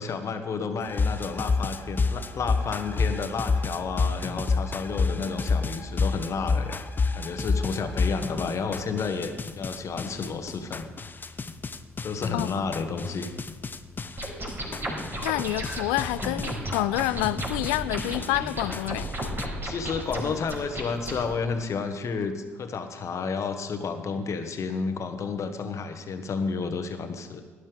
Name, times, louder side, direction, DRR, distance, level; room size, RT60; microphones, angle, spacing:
voice 1, 0.0-6.7 7.1-10.9 12.0-13.3 19.6-27.4, left 5 dB, 45° left, 1.4 m, -31 dB
sound 1, 0.8-19.5, left 4 dB, 25° left, 0.7 m, -30 dB
sound 2, 14.2-21.2, right 1 dB, 30° right, 4.8 m, -34 dB
voice 2, 15.2-19.1, left 18 dB, 65° left, 0.4 m, -28 dB
18.0 x 11.5 x 3.5 m
figure-of-eight pair, 50°, 7 cm